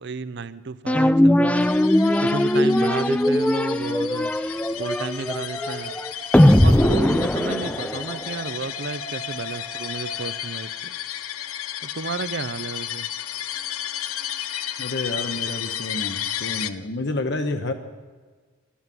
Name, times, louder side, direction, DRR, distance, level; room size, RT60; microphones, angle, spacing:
voice 1, 0.0-1.7 2.2-4.4 4.8-6.0 6.6-10.9 11.8-13.1, right 4 dB, 55° right, 16 dB, 0.6 m, -32 dB
sound 1, 0.9-8.3, left 1 dB, 5° left, 0.3 m, -20 dB
sound 2, 1.6-16.7, left 11 dB, 90° left, 0.6 m, -33 dB
sound 3, 5.5-7.7 8.0-10.3, right 2 dB, 10° right, 1.3 m, -40 dB
voice 2, 14.8-17.7, left 2 dB, 55° left, 6 dB, 0.9 m, -29 dB
12.5 x 11.0 x 7.6 m, 1.4 s
head